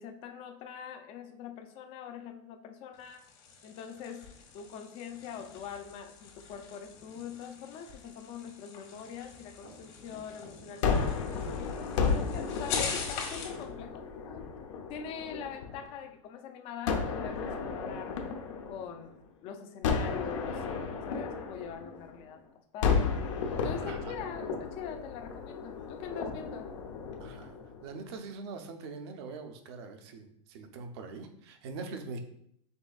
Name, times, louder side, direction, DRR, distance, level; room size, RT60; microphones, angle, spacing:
voice 1, 0.0-3.2 3.6-4.3 4.5-14.1 14.9-18.2 18.7-19.2 19.4-22.5 22.7-23.1 23.5-26.7, left 7 dB, 35° left, 6 dB, 0.5 m, -43 dB
sound 1, 2.9-13.6, left 5 dB, 60° left, 1.6 m, -43 dB
Gunshot gunfire, 10.8-15.9 16.9-19.3 19.8-22.3 22.8-28.0, left 5 dB, 80° left, 0.8 m, -33 dB
voice 2, 23.8-24.2 27.2-27.6 27.8-32.2, right 4 dB, 55° right, 6 dB, 0.6 m, -43 dB
5.3 x 3.5 x 2.4 m, 0.70 s
supercardioid pair, 160°, 16 cm